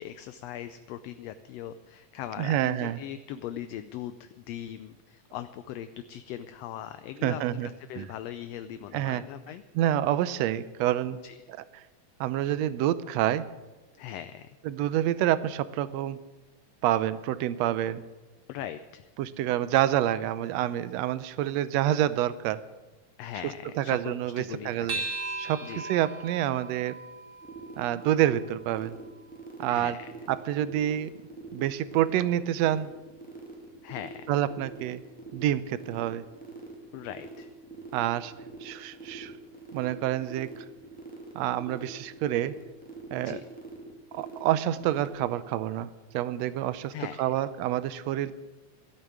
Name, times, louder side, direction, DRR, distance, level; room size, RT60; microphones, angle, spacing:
voice 1, 0.0-9.6 11.2-11.4 14.0-14.6 18.5-19.1 23.2-25.1 25.6-25.9 29.7-30.1 33.8-34.3 36.9-37.5 43.2-43.4 46.9-47.4, left 11 dB, 75° left, 11 dB, 1.5 m, -40 dB
voice 2, 2.4-3.0 7.2-7.7 8.0-8.1 8.9-9.2 9.7-11.2 12.2-13.5 14.6-16.2 16.8-18.0 19.2-22.6 23.8-25.0 25.4-27.0 27.8-29.0 29.6-30.0 30.3-31.1 31.5-32.9 34.3-35.0 35.3-36.2 37.9-38.3 38.6-39.3 39.7-40.6 41.3-42.5 43.1-43.4 44.1-48.4, right 12 dB, 75° right, 15 dB, 1.7 m, -27 dB
sound 1, 24.9-29.6, right 3 dB, 40° right, 0.7 m, -39 dB
sound 2, 27.4-45.1, right 2 dB, 5° left, 1.7 m, -44 dB
13.5 x 8.8 x 9.4 m, 1.1 s
omnidirectional pair, 3.3 m